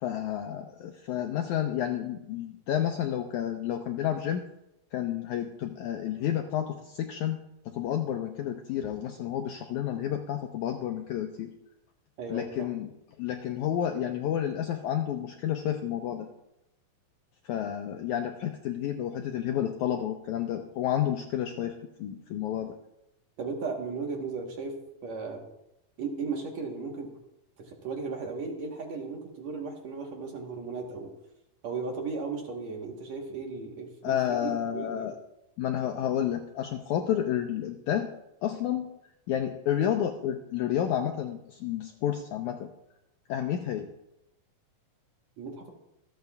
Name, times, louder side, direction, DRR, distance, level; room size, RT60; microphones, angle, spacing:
voice 1, 0.0-4.4 4.9-7.4 7.7-11.5 12.3-12.9 13.2-16.3 17.5-22.7 34.0-35.2 35.6-38.1 38.4-38.9 39.3-42.7 43.3-43.9, left 10 dB, 90° left, 4 dB, 1.7 m, -30 dB
voice 2, 12.2-12.7 23.4-24.7 25.0-25.4 26.0-27.1 27.6-31.1 31.6-34.2 34.4-35.1 45.4-45.7, right 4 dB, 60° right, 1 dB, 2.2 m, -36 dB
26.0 x 8.8 x 2.4 m, 0.85 s
omnidirectional pair, 4.3 m